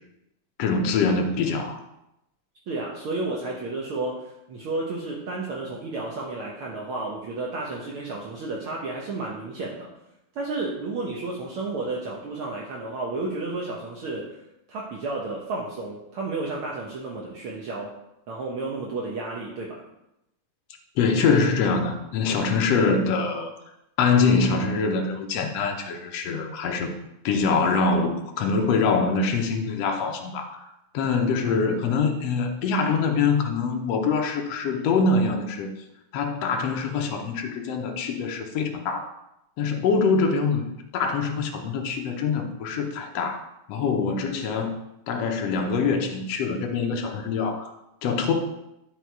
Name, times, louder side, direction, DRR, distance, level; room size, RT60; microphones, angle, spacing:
voice 1, 0.6-1.8 21.0-23.5 24.0-26.9 27.2-30.6 30.9-35.7 36.1-39.1 39.6-43.4 43.7-44.7 45.1-47.7 48.0-48.3, left 4 dB, 65° left, 3 dB, 1.7 m, -24 dB
voice 2, 2.7-9.9 10.3-14.4 14.7-17.9 18.3-19.8, right 3 dB, 70° right, -3 dB, 1.3 m, -32 dB
10.5 x 4.7 x 4.6 m, 0.86 s
omnidirectional pair, 3.7 m